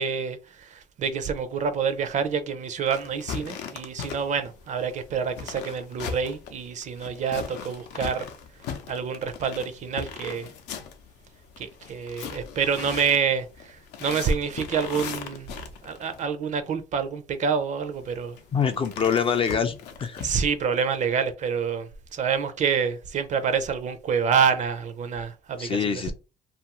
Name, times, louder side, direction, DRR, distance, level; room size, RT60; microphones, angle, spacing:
voice 1, 0.0-8.3 8.9-10.5 11.6-15.5 15.8-18.4 20.2-26.1, right 6 dB, 45° right, 0.4 m, -27 dB
sound 1, 2.9-16.3 17.9-20.3, left 7 dB, 85° left, 0.6 m, -39 dB
voice 2, 18.5-20.2 25.6-26.1, left 6 dB, 35° left, 0.3 m, -25 dB
2.6 x 2.4 x 2.9 m
cardioid pair, 110°, 17 cm